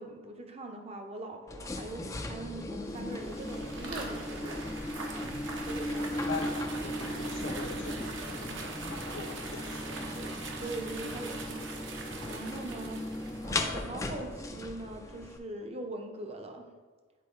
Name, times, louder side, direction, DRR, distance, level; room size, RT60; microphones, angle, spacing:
voice 1, 0.0-4.6 5.7-6.1 9.8-11.8 12.3-13.0 13.4-16.7, right 2 dB, 30° right, 4 dB, 0.6 m, -42 dB
sound 1, 1.5-15.4, left 1 dB, 15° left, 0.4 m, -37 dB
sound 2, 2.9-13.7, right 3 dB, 65° right, 0.8 m, -43 dB
Walk footsteps, 3.7-12.9, right 2 dB, 80° right, 1.1 m, -48 dB
voice 2, 5.3-9.9, left 3 dB, 65° left, 1 dB, 0.9 m, -42 dB
8.5 x 3.9 x 4.4 m, 1.4 s
head